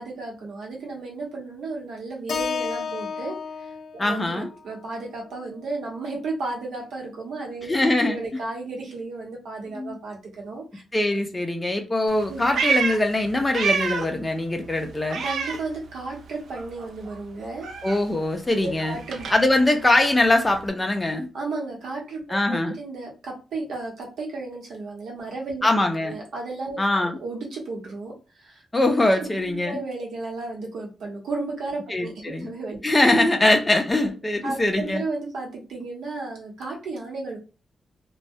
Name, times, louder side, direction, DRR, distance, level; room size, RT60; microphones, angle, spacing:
voice 1, 0.0-7.7 8.0-10.8 12.3-12.4 15.2-17.7 18.6-19.3 21.3-25.6 26.0-28.6 29.4-32.8 34.4-37.4, right 3 dB, 85° right, 0.9 m, -34 dB
Keyboard (musical), 2.3-6.5, left 6 dB, 70° left, 0.5 m, -34 dB
voice 2, 4.0-4.5 7.7-8.2 9.7-9.9 10.9-15.2 17.8-19.0 19.3-21.3 22.3-22.7 25.6-26.1 26.8-27.2 28.7-29.8 31.9-32.5 32.8-35.0, left 2 dB, 15° left, 0.5 m, -22 dB
Meow, 12.1-14.2 14.5-16.3 16.5-20.7, right 5 dB, 65° right, 0.3 m, -30 dB
2.2 x 2.1 x 2.6 m
wide cardioid pair, 125°, 0 cm